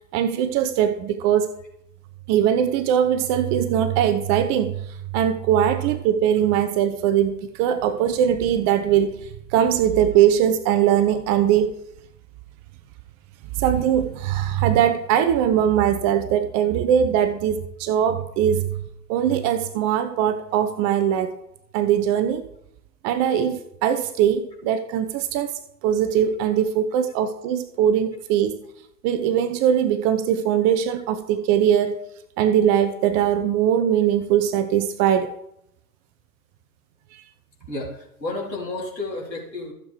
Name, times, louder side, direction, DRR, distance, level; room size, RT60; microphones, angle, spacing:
voice 1, 0.1-1.5 2.3-11.7 13.6-18.7 19.1-21.3 21.7-22.4 23.0-25.5 25.8-28.6 29.0-32.0 32.4-35.3 37.1-37.2, right 9 dB, 35° right, 9 dB, 0.8 m, -21 dB
voice 2, 37.7-39.7, left 2 dB, 90° left, -4 dB, 3.9 m, -31 dB
15.0 x 7.5 x 3.4 m, 0.81 s
figure-of-eight pair, 95°, 49 cm